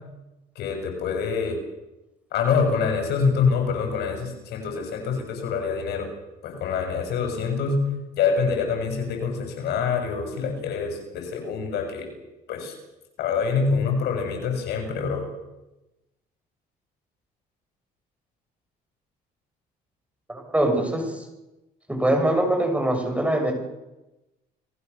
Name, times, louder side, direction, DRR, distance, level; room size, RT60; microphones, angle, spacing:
voice 1, 0.5-1.6 2.3-6.1 6.4-7.8 8.2-12.1 12.5-12.7 13.2-15.2, left 5 dB, 75° left, 5 dB, 6.7 m, -25 dB
voice 2, 20.3-21.2 21.9-23.5, right 1 dB, 10° right, 4 dB, 6.6 m, -23 dB
29.5 x 19.5 x 6.9 m, 1.0 s
cardioid pair, 110°, 17 cm